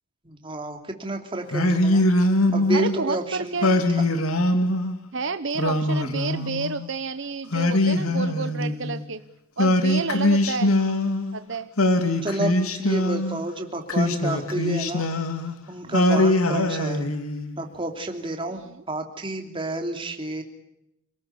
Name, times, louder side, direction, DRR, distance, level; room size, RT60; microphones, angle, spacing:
voice 1, 0.2-2.0 2.5-4.0 12.2-15.1 15.7-17.1 17.6-20.4, right 1 dB, 25° right, 4 dB, 3.0 m, -30 dB
Singing, 1.5-3.0 3.6-4.9 5.5-6.9 7.5-9.0 9.6-11.4 11.8-13.4 13.9-15.5 15.9-17.5, left 1 dB, 80° left, 2.5 m, -22 dB
voice 2, 2.7-3.7 5.1-9.2 9.6-10.7 11.3-11.7 18.6-18.8, right 4 dB, 55° right, 10 dB, 0.9 m, -30 dB
28.5 x 19.5 x 8.4 m, 0.84 s
head